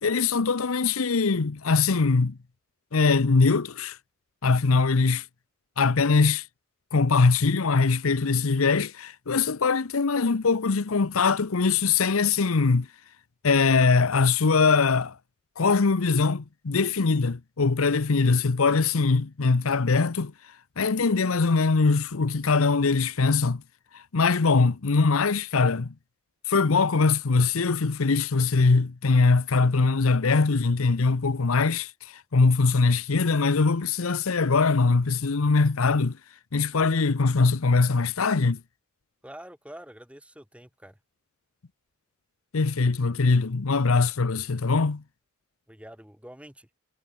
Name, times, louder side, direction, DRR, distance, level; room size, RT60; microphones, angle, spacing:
voice 1, 0.0-2.4 2.9-4.0 4.4-5.3 5.8-6.4 6.9-12.9 13.4-15.2 15.6-20.3 20.8-23.6 23.9-25.9 26.5-36.2 36.5-38.6 42.5-45.0, left 4 dB, 80° left, 0.8 m, -22 dB
voice 2, 39.2-41.0 45.7-46.7, right 1 dB, 5° right, 6.9 m, -46 dB
head